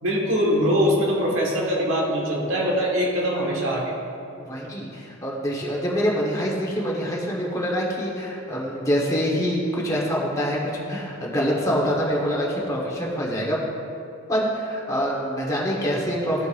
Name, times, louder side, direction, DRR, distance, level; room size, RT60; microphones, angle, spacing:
voice 1, 0.0-3.9, equal, 80° right, -3 dB, 1.6 m, -22 dB
voice 2, 4.5-13.6 14.3-16.5, equal, 15° left, -5 dB, 1.2 m, -25 dB
13.0 x 5.1 x 2.5 m, 2.6 s
head